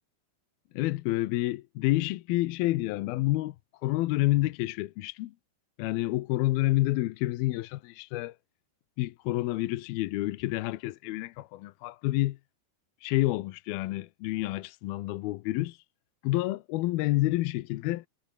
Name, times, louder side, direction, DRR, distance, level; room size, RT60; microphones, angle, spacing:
voice 1, 0.7-3.6 3.8-5.3 5.8-8.4 9.0-12.4 13.0-15.8 16.2-18.0, left 18 dB, 75° left, 2.5 m, -29 dB
omnidirectional pair, 4.7 m